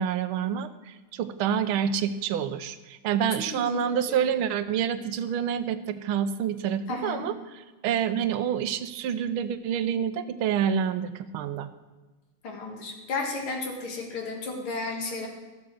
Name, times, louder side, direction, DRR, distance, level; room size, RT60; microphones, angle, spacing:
voice 1, 0.0-7.3 7.8-11.7, right 8 dB, 85° right, 12 dB, 1.5 m, -27 dB
voice 2, 6.9-7.2 12.4-15.3, left 3 dB, 90° left, 2 dB, 2.7 m, -33 dB
13.0 x 7.2 x 6.3 m, 1.2 s
omnidirectional pair, 2.3 m